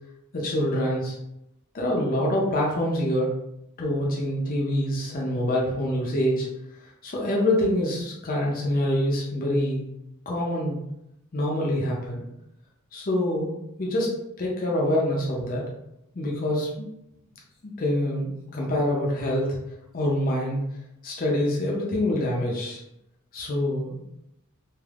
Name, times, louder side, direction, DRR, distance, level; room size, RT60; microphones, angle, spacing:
voice 1, 0.3-1.1 1.7-3.3 3.8-6.5 7.0-9.8 10.3-10.8 11.3-12.2 12.9-14.1 14.4-15.6 16.1-16.9 17.6-19.6 19.9-20.6 21.0-22.8 23.3-24.0, left 1 dB, 40° left, -3 dB, 0.6 m, -25 dB
3.3 x 2.5 x 2.4 m, 0.84 s
head